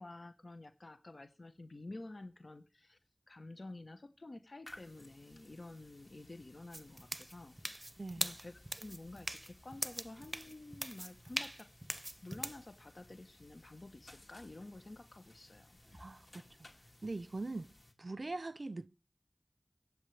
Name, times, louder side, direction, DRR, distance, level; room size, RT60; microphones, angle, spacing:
voice 1, 0.0-3.0 3.3-7.9 8.2-11.7 12.2-15.8, left 2 dB, 90° left, 1.0 m, -51 dB
sound 1, 4.6-17.9, left 1 dB, 65° left, 2.5 m, -60 dB
sound 2, 6.7-12.6, right 1 dB, 25° right, 0.5 m, -42 dB
voice 2, 8.0-8.3 15.9-16.5 17.0-17.7 18.0-18.9, right 2 dB, 85° right, 0.6 m, -42 dB
23.0 x 8.3 x 3.3 m
wide cardioid pair, 45°, 0 cm